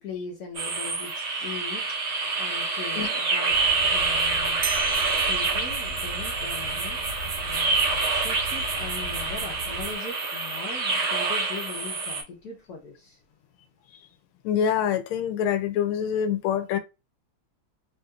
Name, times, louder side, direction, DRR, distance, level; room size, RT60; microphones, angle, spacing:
voice 1, 0.0-1.9 2.4-3.6 3.9-4.7 5.2-13.2, left 4 dB, 60° left, 1.1 m, -40 dB
sound 1, 0.5-12.2, right 3 dB, 50° right, 1.0 m, -27 dB
sound 2, 3.5-10.0, right 1 dB, 65° right, 1.3 m, -37 dB
sound 3, 4.3-4.4 4.6-9.7, right 7 dB, 85° right, 1.5 m, -40 dB
voice 2, 14.4-16.8, left 8 dB, 90° left, 1.4 m, -25 dB
3.5 x 2.8 x 2.3 m
omnidirectional pair, 2.3 m